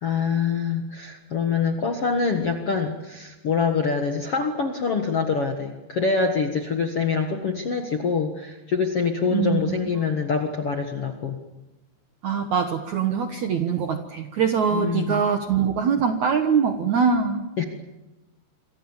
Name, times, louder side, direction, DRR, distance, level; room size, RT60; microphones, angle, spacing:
voice 1, 0.0-11.4 14.7-15.2 17.6-17.7, left 5 dB, 60° left, 4 dB, 1.5 m, -25 dB
voice 2, 9.3-9.6 12.2-17.5, right 6 dB, 70° right, 6 dB, 1.8 m, -23 dB
28.0 x 24.0 x 7.3 m, 1.0 s
omnidirectional pair, 5.1 m